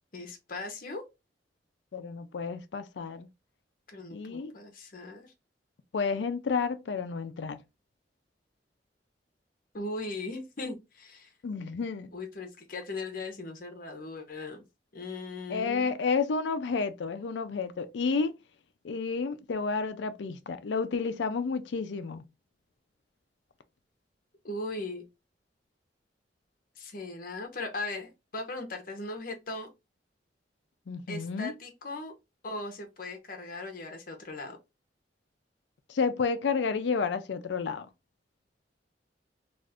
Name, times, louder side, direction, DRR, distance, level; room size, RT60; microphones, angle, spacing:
voice 1, 0.1-1.0 3.9-5.3 9.7-11.3 12.1-14.6 14.9-16.0 24.4-25.0 26.8-29.7 31.1-32.1 32.4-34.6, left 2 dB, 50° left, 0.8 m, -38 dB
voice 2, 1.9-3.3 4.1-4.5 5.9-7.6 11.4-12.1 15.5-18.3 18.8-22.2 30.9-31.5 35.9-37.9, left 5 dB, 80° left, 0.4 m, -31 dB
2.4 x 2.4 x 3.4 m
head